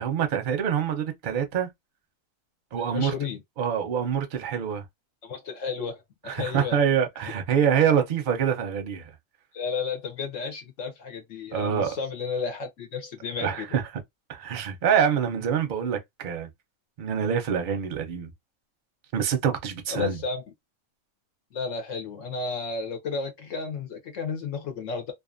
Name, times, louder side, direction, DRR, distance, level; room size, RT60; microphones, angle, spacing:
voice 1, 0.0-1.7 2.7-3.1 3.6-4.8 6.3-9.1 11.5-11.9 13.4-13.8 14.3-16.5 17.0-18.3 19.1-20.2, right 8 dB, 50° right, 0.7 m, -25 dB
voice 2, 2.8-3.4 5.2-6.8 7.2-7.3 9.5-13.7 19.9-20.4 21.5-25.1, left 5 dB, 70° left, 1.1 m, -32 dB
2.5 x 2.5 x 2.5 m
omnidirectional pair, 1.4 m